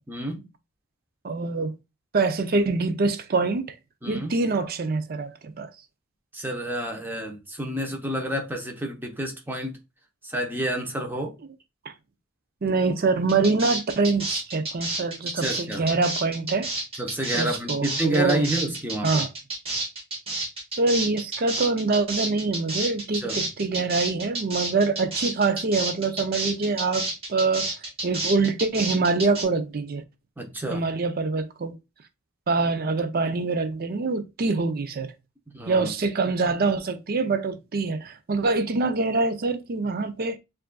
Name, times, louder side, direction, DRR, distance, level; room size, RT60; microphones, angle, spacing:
voice 1, 0.1-0.5 4.0-4.3 6.3-9.8 10.2-11.3 15.3-15.8 17.0-19.2 23.2-23.5 30.4-30.8 35.5-35.9, right 1 dB, 10° right, 0.7 m, -29 dB
voice 2, 1.2-1.7 2.1-3.7 4.1-5.7 12.6-16.7 17.3-18.4 19.0-19.3 20.8-27.7 28.0-30.0 30.7-31.7 32.5-35.1 35.7-40.4, right 3 dB, 45° right, 0.5 m, -25 dB
sound 1, 13.3-29.4, right 2 dB, 25° right, 1.2 m, -30 dB
7.0 x 2.5 x 2.2 m
head